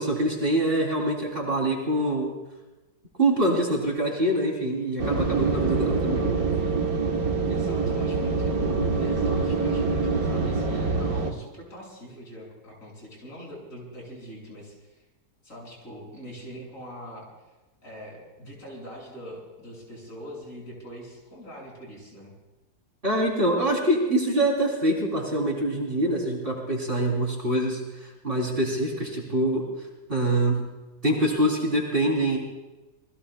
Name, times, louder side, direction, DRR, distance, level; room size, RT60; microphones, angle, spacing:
voice 1, 0.0-2.3 3.2-6.4 23.0-29.6 30.1-30.6 31.0-32.4, right 1 dB, 35° right, -1 dB, 3.4 m, -25 dB
sound 1, 5.0-11.3, right 4 dB, 65° right, 1.9 m, -25 dB
voice 2, 7.5-15.0 15.4-17.3 17.8-22.3, equal, 55° left, -3 dB, 6.7 m, -42 dB
28.0 x 20.0 x 2.2 m, 1.1 s
omnidirectional pair, 1.7 m